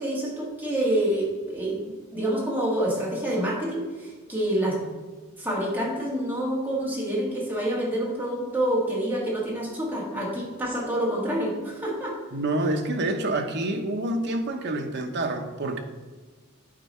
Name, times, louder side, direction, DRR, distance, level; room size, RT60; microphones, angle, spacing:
voice 1, 0.0-4.8 5.4-12.1, right 1 dB, 10° right, -5 dB, 2.0 m, -27 dB
voice 2, 12.3-15.8, right 2 dB, 50° right, 4 dB, 0.9 m, -27 dB
8.9 x 4.6 x 4.3 m, 1.3 s
head